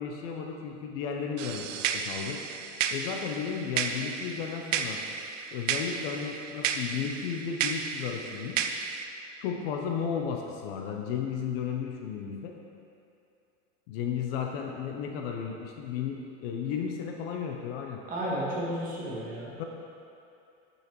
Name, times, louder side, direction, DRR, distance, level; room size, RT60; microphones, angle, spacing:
voice 1, 0.0-1.7 1.9-2.4 2.9-5.0 5.5-8.6 9.4-12.5 13.9-18.0 19.6-19.7, left 7 dB, 50° left, 2 dB, 0.7 m, -34 dB
sound 1, 1.4-9.0, right 7 dB, 85° right, 0.6 m, -33 dB
voice 2, 18.1-19.7, equal, 20° right, -6 dB, 1.5 m, -33 dB
8.3 x 5.7 x 3.0 m, 2.6 s
supercardioid pair, 140°, 37 cm